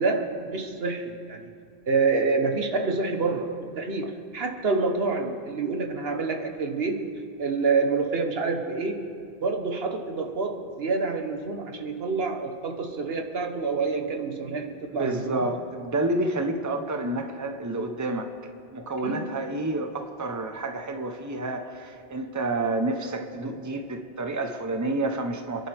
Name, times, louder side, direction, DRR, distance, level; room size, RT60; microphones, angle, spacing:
voice 1, 0.0-1.5 1.9-9.1 9.4-15.5 19.0-19.3, right 4 dB, 75° right, 4 dB, 1.4 m, -27 dB
voice 2, 14.9-18.3 18.7-25.7, right 2 dB, 20° right, 5 dB, 0.8 m, -29 dB
28.5 x 11.0 x 3.5 m, 2.3 s
omnidirectional pair, 1.0 m